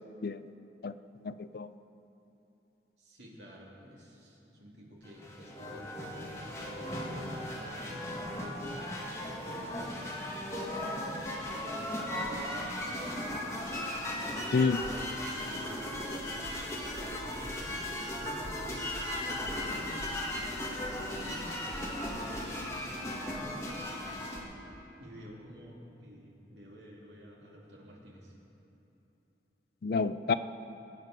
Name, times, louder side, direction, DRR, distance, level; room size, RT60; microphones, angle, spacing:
voice 1, 1.2-1.7 14.5-14.8 29.8-30.3, left 4 dB, 55° left, 13 dB, 0.4 m, -28 dB
voice 2, 3.0-10.1 10.9-13.3 14.1-14.9 15.2-19.9 20.7-23.7 25.0-28.4, equal, 70° right, -3 dB, 2.9 m, -51 dB
sound 1, 5.0-24.4, left 1 dB, 15° left, 1.7 m, -37 dB
22.0 x 9.1 x 5.2 m, 2.9 s
head